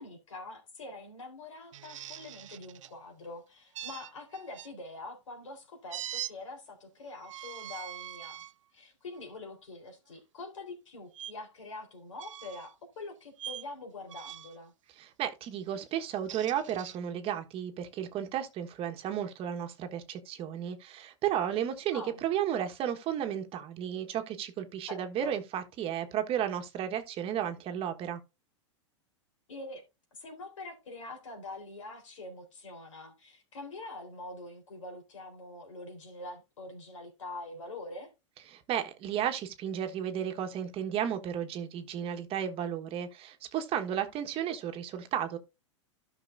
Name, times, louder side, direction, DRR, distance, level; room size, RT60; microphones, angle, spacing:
voice 1, 0.0-8.4 8.7-14.7 21.9-22.2 24.9-25.4 29.5-29.8 30.1-38.1, left 2 dB, 85° left, 3.8 m, -44 dB
sound 1, 1.7-2.9 3.7-4.7 5.9-6.3 7.2-8.5 9.1-9.3 11.1-11.3 12.2-12.7 13.4-13.7 14.1-14.6 16.0-17.0, right 11 dB, 85° right, 0.5 m, -42 dB
voice 2, 15.0-28.2 38.5-45.4, right 9 dB, 35° right, 1.3 m, -33 dB
13.0 x 5.9 x 2.6 m
hypercardioid pair, 115°, 16 cm